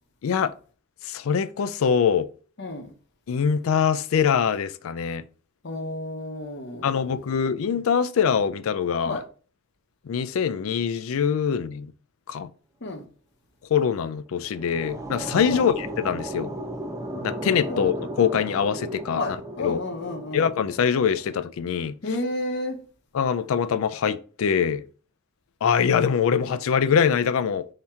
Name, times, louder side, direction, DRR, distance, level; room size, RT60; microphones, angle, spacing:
voice 1, 0.2-0.5 1.0-2.3 3.3-5.2 6.8-9.2 10.1-11.9 12.3-12.5 13.7-16.5 17.2-19.2 19.6-19.8 20.3-22.0 23.1-24.8 25.6-27.7, left 7 dB, 75° left, 0.4 m, -23 dB
voice 2, 2.6-2.9 5.6-7.1 9.0-9.2 12.8-13.1 15.5-15.7 17.7-17.9 19.1-20.4 22.0-22.8, left 2 dB, 55° left, 0.8 m, -31 dB
sound 1, 14.3-21.4, right 1 dB, 15° right, 0.4 m, -35 dB
4.3 x 2.8 x 3.5 m
head